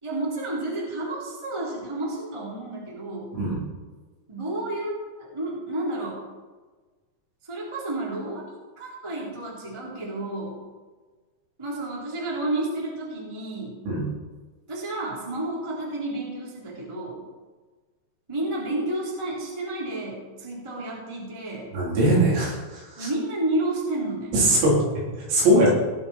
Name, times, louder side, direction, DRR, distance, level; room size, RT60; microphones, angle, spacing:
voice 1, 0.0-3.3 4.3-6.2 7.4-8.4 8.8-10.6 11.6-13.8 14.7-17.2 18.3-21.7 23.0-24.4, right 2 dB, 5° right, -5 dB, 2.6 m, -31 dB
voice 2, 21.7-22.6 23.0-23.1 24.3-24.7 25.1-25.7, right 1 dB, 65° right, -6 dB, 6.1 m, -20 dB
20.5 x 7.2 x 4.5 m, 1.3 s
omnidirectional pair, 5.7 m